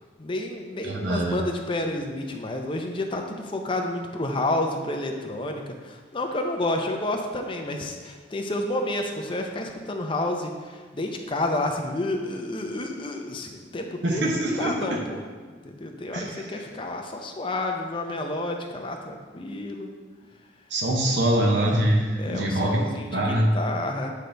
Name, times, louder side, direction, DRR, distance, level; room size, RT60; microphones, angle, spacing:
voice 1, 0.2-15.2 15.6-19.9 22.2-24.1, left 1 dB, 30° left, 3 dB, 0.6 m, -30 dB
voice 2, 0.8-1.4 14.0-15.0 16.1-16.6 20.7-23.5, right 1 dB, 80° right, -1 dB, 0.9 m, -24 dB
8.2 x 3.9 x 3.3 m, 1.5 s
head